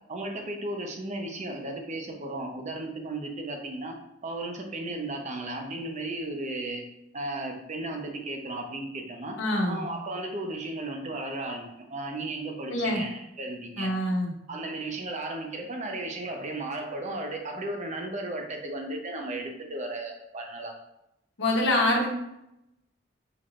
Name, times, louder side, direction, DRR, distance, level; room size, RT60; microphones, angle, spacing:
voice 1, 0.1-3.9 4.2-6.8 7.1-9.4 9.7-13.9 14.5-20.8, right 2 dB, 40° right, 3 dB, 0.7 m, -35 dB
voice 2, 9.4-9.8 12.7-13.0 13.8-14.3 21.4-22.1, left 1 dB, 75° left, -1 dB, 1.0 m, -25 dB
5.9 x 3.1 x 2.5 m, 0.86 s
head